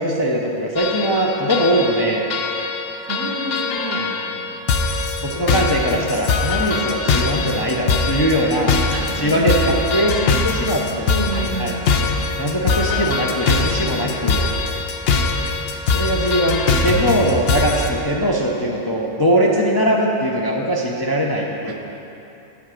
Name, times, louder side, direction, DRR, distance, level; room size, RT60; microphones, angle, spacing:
voice 1, 0.0-2.3 3.9-4.2 5.2-8.8 9.2-11.1 11.3-11.8 12.4-14.5 15.9-21.8, equal, 30° left, -2 dB, 0.5 m, -21 dB
sound 1, 0.8-17.9, left 4 dB, 60° left, 0.8 m, -22 dB
voice 2, 3.1-4.6 8.9-9.8 10.1-10.3 11.1-11.9 21.6-21.8, right 2 dB, 70° right, 2 dB, 1.2 m, -30 dB
9.0 x 4.9 x 7.5 m, 2.9 s
omnidirectional pair, 1.3 m